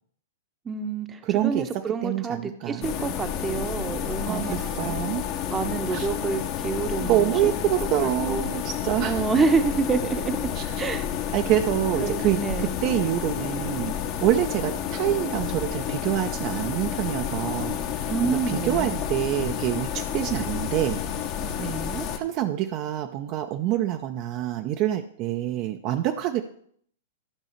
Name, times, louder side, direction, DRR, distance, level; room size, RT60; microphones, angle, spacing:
voice 1, 0.6-5.0 5.5-7.5 8.0-8.4 9.0-10.4 10.8-11.1 12.0-12.7 18.1-19.0 21.6-22.1, right 5 dB, 20° right, 9 dB, 0.8 m, -28 dB
voice 2, 1.2-1.7 2.0-2.9 4.3-5.3 5.9-6.1 7.0-9.2 10.6-10.8 11.3-21.0 22.2-26.4, right 12 dB, 40° right, 6 dB, 0.5 m, -26 dB
sound 1, 2.8-22.2, left 9 dB, 40° left, 1.0 m, -30 dB
12.0 x 5.5 x 4.5 m, 0.65 s
hypercardioid pair, 115°, 0 cm